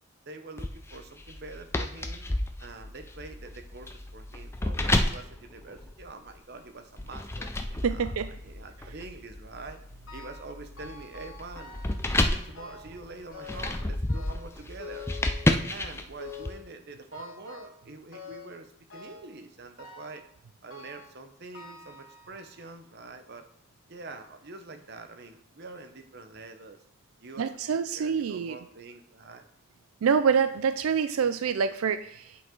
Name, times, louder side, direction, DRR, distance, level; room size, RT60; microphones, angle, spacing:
voice 1, 0.3-2.2 2.6-7.5 7.9-8.2 8.4-9.8 10.1-11.8 12.1-15.1 15.7-20.2 20.6-23.4 23.9-26.8 27.2-29.5, right 3 dB, 50° right, 7 dB, 0.8 m, -45 dB
sound 1, 0.6-6.4 7.0-16.5, left 1 dB, 10° left, 0.4 m, -31 dB
voice 2, 7.8-8.3 27.4-28.6 30.0-32.4, right 6 dB, 90° right, 11 dB, 0.4 m, -26 dB
sound 2, 10.1-10.5 10.8-12.1 12.5-13.0 13.3-13.8 14.1-15.8 16.2-16.7 17.1-17.8 18.1-18.6 18.9-19.3 19.8-20.2 20.7-21.2 21.5-22.6 23.3-23.4 24.2-24.3 24.7-24.8, left 4 dB, 75° left, 1.6 m, -46 dB
8.4 x 4.9 x 3.8 m, 0.75 s
head